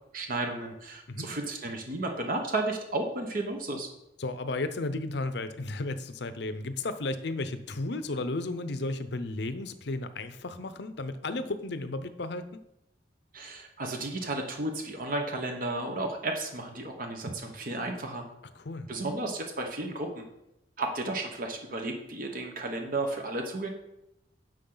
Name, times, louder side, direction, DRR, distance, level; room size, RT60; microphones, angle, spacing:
voice 1, 0.1-3.9 13.3-18.2 18.9-20.2 20.8-23.7, right 2 dB, 50° right, 3 dB, 1.1 m, -33 dB
voice 2, 4.2-12.5 18.5-18.9, left 2 dB, 65° left, 11 dB, 0.7 m, -34 dB
10.5 x 6.4 x 3.9 m, 0.86 s
head